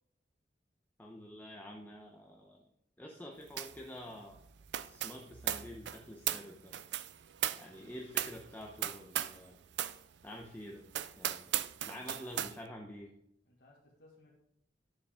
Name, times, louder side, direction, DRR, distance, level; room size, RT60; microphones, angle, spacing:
voice 1, 1.0-2.6 3.0-4.4 4.8-6.7 7.6-9.6 10.2-10.8 11.2-11.5 11.8-13.1, equal, 10° left, 0 dB, 0.8 m, -48 dB
sound 1, 3.6-3.8 4.1-9.4 9.7-10.0 10.4-10.5 10.9-12.5, right 11 dB, 75° right, 0.4 m, -37 dB
voice 2, 12.0-12.6 13.4-14.3, left 2 dB, 70° left, -4 dB, 1.7 m, -63 dB
9.8 x 7.1 x 3.6 m, 0.76 s
head